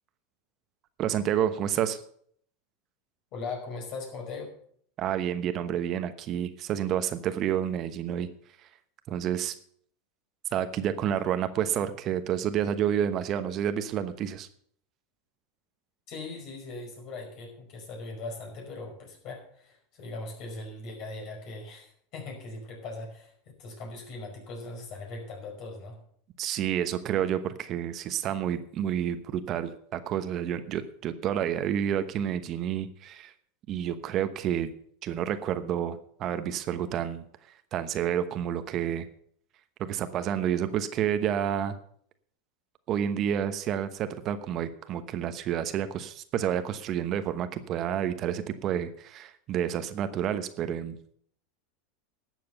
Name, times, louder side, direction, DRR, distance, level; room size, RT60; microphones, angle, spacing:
voice 1, 1.0-2.0 5.0-8.3 9.1-9.5 10.5-14.5 26.4-33.3 33.7-34.7 35.0-37.2 37.7-39.1 39.8-41.8 42.9-51.1, right 9 dB, 45° right, 10 dB, 1.0 m, -29 dB
voice 2, 3.3-4.5 16.1-26.0, left 3 dB, 50° left, 2 dB, 5.3 m, -40 dB
12.0 x 7.7 x 6.8 m, 0.63 s
hypercardioid pair, 95°, 0 cm